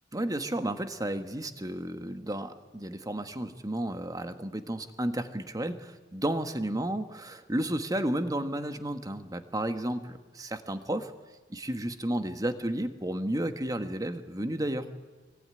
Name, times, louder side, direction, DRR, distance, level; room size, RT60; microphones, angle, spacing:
voice 1, 0.1-11.1 11.5-14.8, right 1 dB, 20° right, 8 dB, 1.6 m, -32 dB
24.0 x 24.0 x 9.7 m, 1.3 s
head